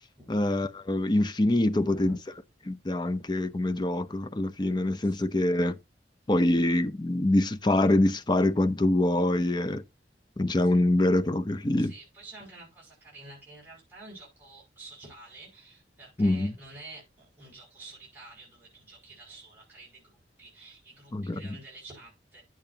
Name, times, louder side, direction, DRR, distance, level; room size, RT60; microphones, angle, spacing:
voice 1, 0.3-2.2 2.7-5.8 6.3-9.8 10.4-11.9 16.2-16.5 21.1-21.4, left 1 dB, 25° left, 0.6 m, -25 dB
voice 2, 1.6-2.2 5.0-5.2 10.6-10.7 11.8-22.4, right 2 dB, 10° right, 5.8 m, -49 dB
10.5 x 8.8 x 2.8 m
head